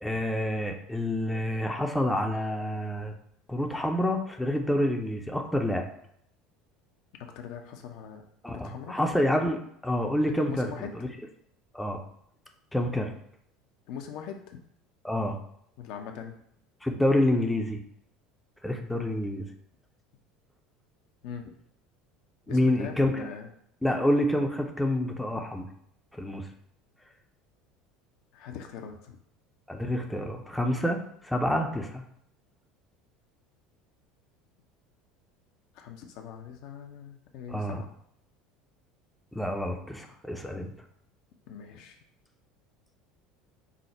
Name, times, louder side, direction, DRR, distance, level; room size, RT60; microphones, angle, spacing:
voice 1, 0.0-3.1 3.5-5.9 8.4-10.7 11.0-11.1 11.7-12.0 12.7-13.1 15.0-15.4 16.8-17.8 18.6-19.5 22.5-23.1 23.8-25.7 26.1-26.4 29.7-32.0 37.5-37.8 39.3-40.7, left 1 dB, 5° left, 2 dB, 0.5 m, -28 dB
voice 2, 7.2-9.0 10.2-11.1 13.9-14.6 15.8-16.4 21.2-21.5 22.5-23.5 28.3-29.2 35.7-37.9 41.5-42.0, left 7 dB, 55° left, 3 dB, 0.5 m, -41 dB
4.9 x 2.0 x 4.2 m, 0.70 s
figure-of-eight pair, 65°, 0 cm